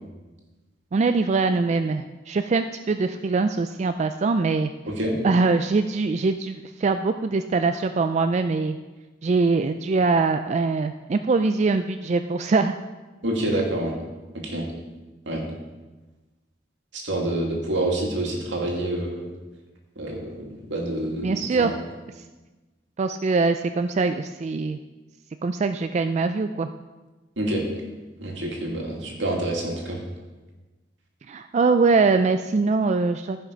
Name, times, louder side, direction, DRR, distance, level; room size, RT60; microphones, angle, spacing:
voice 1, 0.9-4.7 5.2-8.8 9.2-12.8 13.5-13.6 21.2-21.8 22.1-22.2 23.0-24.8 25.4-26.7 31.3-33.4, right 4 dB, 40° right, 8 dB, 0.3 m, -23 dB
voice 2, 13.2-13.9 14.4-14.7 15.3-15.4 16.9-19.3 20.0-21.7 27.4-27.6 28.2-30.0, right 1 dB, 80° right, 0 dB, 2.3 m, -27 dB
14.5 x 5.8 x 5.1 m, 1.2 s
head